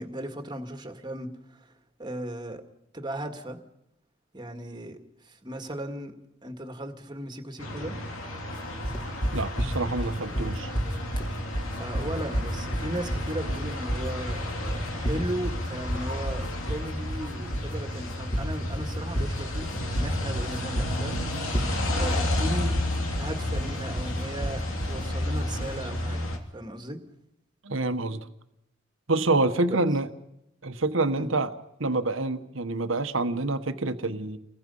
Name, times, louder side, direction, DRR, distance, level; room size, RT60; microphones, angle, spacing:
voice 1, 0.0-1.6 2.0-2.6 2.9-3.6 4.3-5.0 5.2-6.2 6.4-8.0 11.8-21.2 21.9-22.8 23.2-27.0 29.7-29.9 31.1-31.3, right 1 dB, 20° right, 6 dB, 2.0 m, -36 dB
sound 1, 7.6-26.4, left 1 dB, 75° left, 3.0 m, -32 dB
sound 2, 8.8-25.8, equal, 20° left, 2.9 m, -31 dB
voice 2, 9.3-10.7 27.6-28.3 29.1-30.1 30.6-31.5 31.8-34.4, right 2 dB, 70° right, 9 dB, 1.3 m, -27 dB
30.0 x 21.5 x 5.6 m, 0.86 s
head